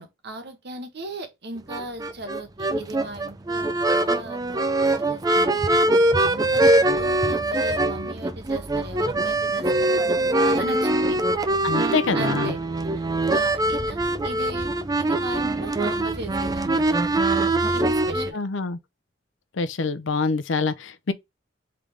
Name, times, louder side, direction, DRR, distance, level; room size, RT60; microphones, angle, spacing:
voice 1, 0.0-11.2 11.6-12.6 12.9-13.0 13.3-18.4, right 2 dB, 60° right, 1.2 m, -38 dB
sound 1, 1.7-18.3, right 2 dB, 20° right, 0.4 m, -23 dB
voice 2, 11.6-12.5 18.3-18.8 19.6-21.1, left 4 dB, 85° left, 0.6 m, -25 dB
3.8 x 3.4 x 3.3 m
head